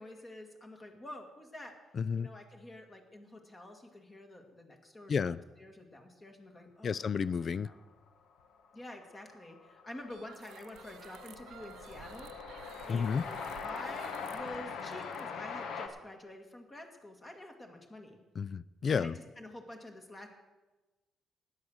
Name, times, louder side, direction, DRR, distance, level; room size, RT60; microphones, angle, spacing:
voice 1, 0.0-1.7 2.1-7.1 7.6-7.8 8.7-18.2 18.9-19.1 19.4-20.3, left 1 dB, 25° left, 3 dB, 1.9 m, -48 dB
voice 2, 1.9-2.3 5.1-5.4 6.8-7.7 12.9-13.2 18.4-19.2, left 6 dB, 50° left, 18 dB, 0.3 m, -31 dB
Train, 8.5-8.6 8.7-15.9, left 5 dB, 80° left, 1.3 m, -42 dB
sound 1, 10.1-16.0, right 10 dB, 85° right, 0.7 m, -54 dB
13.0 x 9.2 x 6.4 m, 1.1 s
cardioid pair, 90°, 0 cm